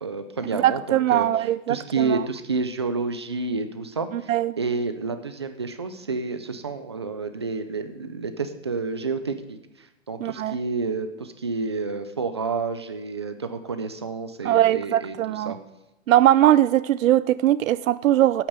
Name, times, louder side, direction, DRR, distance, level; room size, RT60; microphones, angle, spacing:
voice 1, 0.0-1.3 1.7-4.3 4.6-9.6 10.1-15.6, right 4 dB, 20° right, 9 dB, 0.4 m, -29 dB
voice 2, 0.5-2.2 4.1-4.6 10.2-10.6 14.4-15.5 16.1-18.5, right 12 dB, 85° right, 16 dB, 0.5 m, -20 dB
8.8 x 8.6 x 8.0 m, 1.0 s
hypercardioid pair, 170°, 39 cm